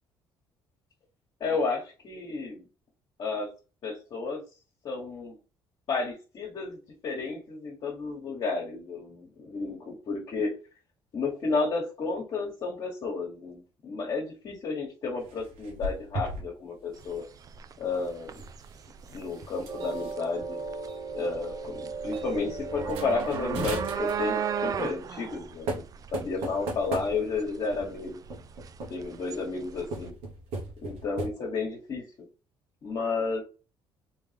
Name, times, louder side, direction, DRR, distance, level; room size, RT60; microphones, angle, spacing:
voice 1, 1.4-2.6 3.2-3.5 3.8-4.4 4.8-5.4 5.9-10.5 11.1-17.3 17.8-18.3 19.1-20.6 21.1-25.8 26.1-28.2 28.9-30.1 30.8-32.3 32.8-33.4, left 4 dB, 55° left, -2 dB, 1.3 m, -32 dB
sound 1, 15.2-16.5 16.8-17.1 18.2-20.1 20.9-21.0 21.3-21.6 22.1-22.2 22.8-24.4 25.3-25.4 25.7-27.5 28.3-29.2 29.8-31.3, right 2 dB, 90° right, 1.2 m, -38 dB
sound 2, 16.9-30.1, right 7 dB, 40° right, 0.4 m, -37 dB
sound 3, 19.7-24.7, right 4 dB, 60° right, 1.1 m, -37 dB
3.5 x 3.3 x 3.4 m, 0.33 s
cardioid pair, 95°, 9 cm